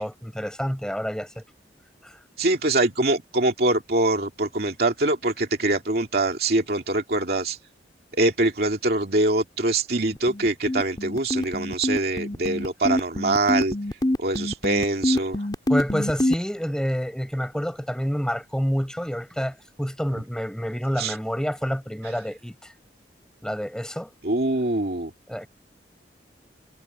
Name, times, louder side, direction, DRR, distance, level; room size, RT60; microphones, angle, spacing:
voice 1, 0.0-1.4 2.0-2.2 15.7-22.7 23.4-24.1 25.3-25.5, equal, 5° left, 4.9 m, -28 dB
voice 2, 2.4-7.6 8.1-13.7 14.2-15.5 21.0-21.2 22.0-22.1 24.2-25.1, right 2 dB, 60° right, 2.5 m, -24 dB
sound 1, 10.0-16.3, left 1 dB, 25° left, 3.0 m, -25 dB
head